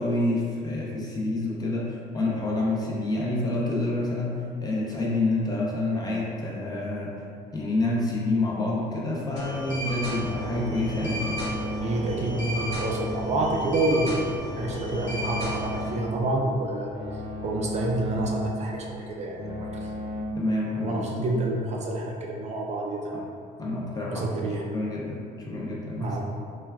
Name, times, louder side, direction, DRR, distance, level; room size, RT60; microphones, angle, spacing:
voice 1, 0.0-7.2 7.5-11.4 20.4-21.0 21.3-21.4 23.6-24.3 24.7-26.2, left 2 dB, 25° left, -3 dB, 0.5 m, -28 dB
sound 1, 9.4-15.9, right 1 dB, 80° left, 0.9 m, -34 dB
sound 2, 10.1-20.2, left 1 dB, 55° left, 1.0 m, -35 dB
voice 2, 11.8-17.0 17.4-19.9 20.8-23.3 24.1-24.6 26.0-26.2, right 2 dB, 40° right, -1 dB, 0.4 m, -28 dB
3.1 x 2.2 x 2.3 m, 2.3 s
cardioid pair, 110°, 17 cm